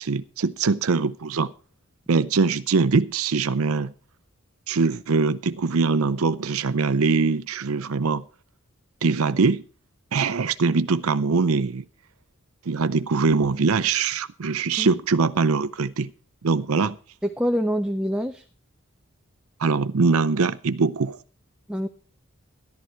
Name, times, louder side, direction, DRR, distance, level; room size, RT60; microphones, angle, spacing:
voice 1, 0.0-1.5 2.1-3.9 4.7-8.2 9.0-9.6 10.1-11.8 12.7-16.1 16.4-17.0 19.6-21.2, right 4 dB, 80° right, 0.6 m, -22 dB
voice 2, 17.2-18.4 21.7-21.9, equal, 5° right, 0.6 m, -25 dB
14.0 x 12.0 x 4.5 m
head